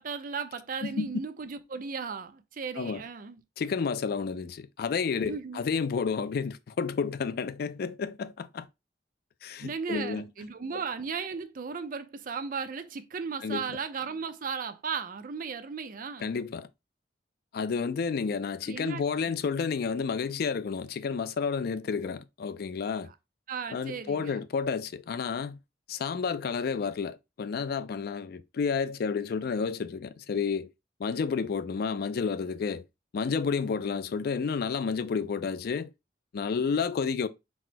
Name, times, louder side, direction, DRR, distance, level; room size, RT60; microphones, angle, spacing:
voice 1, 0.0-3.4 5.2-5.6 9.6-16.4 18.7-19.3 23.5-24.4, right 5 dB, 50° right, 0.5 m, -36 dB
voice 2, 0.8-1.2 2.8-3.0 3.6-8.7 9.4-10.3 10.7-10.8 13.4-13.8 16.2-16.7 17.5-23.1 23.7-25.6 25.9-30.7 31.0-32.8 33.1-35.9 36.3-37.3, left 5 dB, 55° left, 0.3 m, -31 dB
4.2 x 2.1 x 4.4 m
head